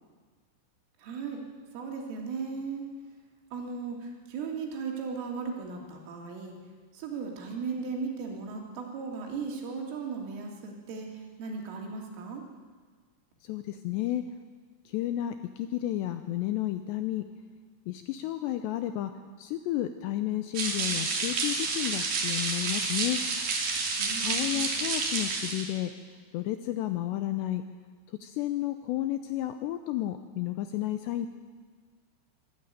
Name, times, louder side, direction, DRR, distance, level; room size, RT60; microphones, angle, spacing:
voice 1, 1.0-1.4 1.7-2.9 3.5-6.6 6.9-12.4 24.0-24.7, right 5 dB, 80° right, 0 dB, 5.4 m, -37 dB
voice 2, 13.4-14.2 14.9-17.3 17.9-19.1 19.4-23.2 24.2-25.9 26.3-27.7 28.1-31.3, left 13 dB, 80° left, 8 dB, 2.6 m, -32 dB
sound 1, 20.5-25.7, right 4 dB, 50° right, 4.1 m, -30 dB
25.0 x 13.0 x 9.1 m, 1.5 s
omnidirectional pair, 5.7 m